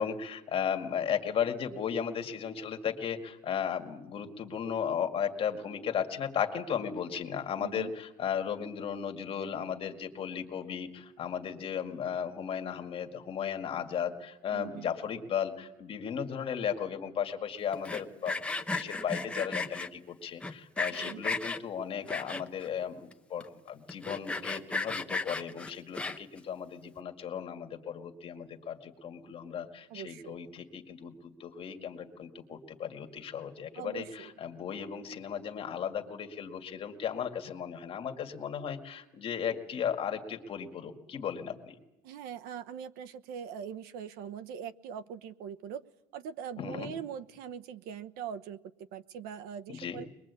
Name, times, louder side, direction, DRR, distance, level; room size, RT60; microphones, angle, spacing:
voice 1, 0.0-18.4 18.7-41.8 46.6-46.9 49.7-50.0, left 8 dB, 35° left, 5 dB, 2.2 m, -35 dB
voice 2, 7.6-7.9 14.5-14.9 20.9-21.2 29.9-30.4 33.7-34.3 42.0-45.8 46.1-48.6 48.9-50.0, right 8 dB, 85° right, 11 dB, 1.1 m, -42 dB
Sawing, 17.7-19.9 20.4-21.6 22.1-22.7 23.1-23.2 23.4-23.5 23.9-26.4, left 3 dB, 5° left, 0.9 m, -34 dB
24.5 x 21.5 x 8.4 m, 0.93 s
cardioid pair, 160°, 15 cm